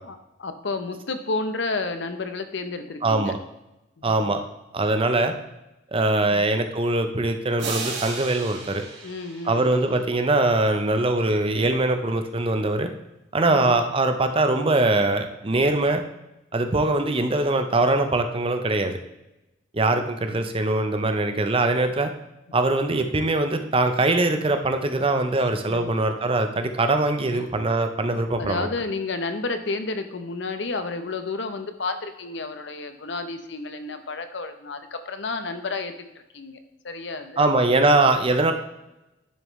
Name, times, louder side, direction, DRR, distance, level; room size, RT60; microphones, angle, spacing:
voice 1, 0.0-3.4 4.0-4.3 9.0-9.7 13.4-13.8 19.7-20.1 25.7-26.0 27.3-27.5 28.1-36.1 36.3-36.6 36.8-37.5, left 3 dB, 65° left, 9 dB, 0.8 m, -31 dB
voice 2, 3.0-3.4 4.0-4.4 4.7-5.3 5.9-8.9 9.5-12.9 13.3-16.0 16.5-19.0 19.7-22.1 22.5-28.7 37.4-38.5, right 2 dB, 30° right, 7 dB, 0.6 m, -22 dB
sound 1, 7.6-10.3, right 4 dB, 60° right, 2.0 m, -35 dB
10.5 x 6.7 x 3.2 m, 0.95 s
head